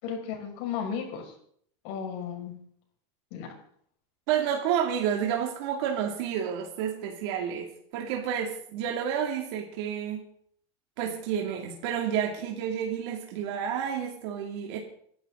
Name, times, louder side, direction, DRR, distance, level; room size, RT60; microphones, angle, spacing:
voice 1, 0.0-1.3 1.8-2.5 3.3-3.5, left 7 dB, 60° left, 1 dB, 6.1 m, -34 dB
voice 2, 4.3-7.7 7.9-10.2 11.0-14.8, right 8 dB, 65° right, 0 dB, 2.7 m, -30 dB
27.0 x 12.5 x 4.0 m, 0.63 s
cardioid pair, 165°, 15 cm